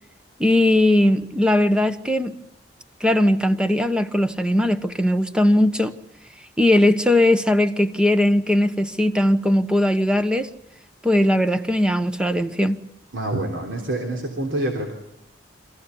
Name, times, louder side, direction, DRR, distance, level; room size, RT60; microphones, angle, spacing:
voice 1, 0.4-2.3 3.0-5.9 6.6-10.5 11.0-12.8, left 1 dB, 5° right, 1.0 m, -19 dB
voice 2, 13.1-14.9, right 1 dB, 90° right, 3.5 m, -26 dB
26.0 x 16.0 x 9.7 m
head